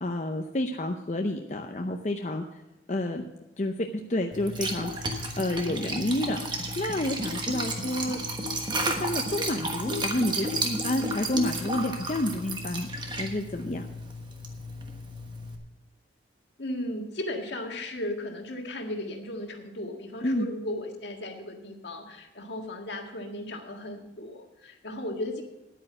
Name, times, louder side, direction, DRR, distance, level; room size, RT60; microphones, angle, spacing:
voice 1, 0.0-2.4 2.9-3.2 3.6-6.4 6.8-8.2 8.8-12.9 13.2-13.9 20.2-20.5, left 1 dB, 40° left, 3 dB, 0.6 m, -29 dB
Liquid, 4.3-15.6, right 1 dB, 25° right, 1.2 m, -33 dB
voice 2, 9.9-10.5 10.9-11.1 16.6-25.4, left 1 dB, 70° left, 3 dB, 1.8 m, -36 dB
10.0 x 9.0 x 6.2 m, 0.94 s
head